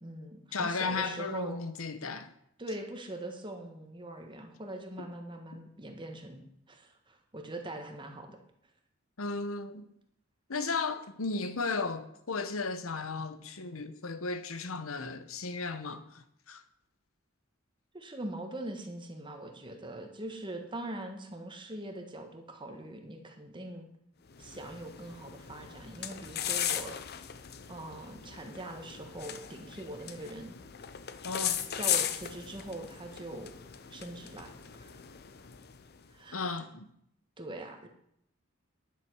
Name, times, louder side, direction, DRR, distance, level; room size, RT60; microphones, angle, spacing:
voice 1, 0.0-1.6 2.6-8.4 17.9-23.9 24.4-27.0 27.7-30.6 31.7-33.6 33.9-34.9 36.1-36.6 37.4-37.9, right 1 dB, 25° right, 1.4 m, -42 dB
voice 2, 0.5-2.3 9.2-9.9 10.5-16.6 31.2-31.6 36.3-36.9, left 4 dB, 85° left, 1.0 m, -35 dB
sound 1, 24.3-36.1, left 10 dB, 50° left, 0.7 m, -38 dB
10.5 x 7.7 x 6.2 m
head